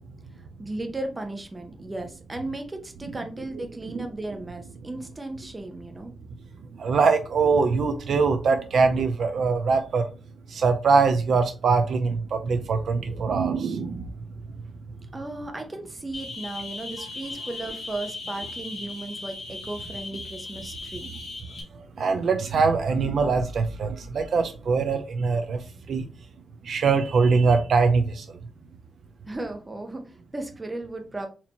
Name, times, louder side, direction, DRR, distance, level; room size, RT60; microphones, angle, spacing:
voice 1, 0.6-6.2 15.1-21.1 29.2-31.3, right 2 dB, 20° right, 0.7 m, -35 dB
voice 2, 6.8-10.1 10.5-14.1 22.0-26.1 26.6-28.3, right 4 dB, 65° right, 0.4 m, -23 dB
sound 1, 16.1-21.6, left 3 dB, 85° left, 1.1 m, -38 dB
4.3 x 2.8 x 2.8 m
wide cardioid pair, 130°, 0 cm